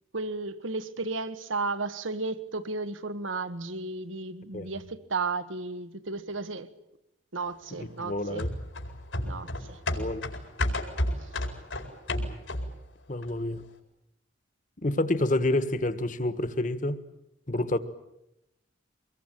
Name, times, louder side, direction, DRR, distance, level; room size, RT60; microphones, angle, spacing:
voice 1, 0.1-6.7 7.3-8.5 9.2-9.8, right 3 dB, 85° right, 1.4 m, -34 dB
voice 2, 7.8-8.5 9.9-10.3 13.1-13.6 14.8-17.0 17.5-17.8, left 1 dB, 40° left, 1.4 m, -28 dB
sound 1, 8.4-12.9 13.2-13.3, left 1 dB, 85° left, 4.5 m, -31 dB
25.0 x 21.5 x 9.1 m
head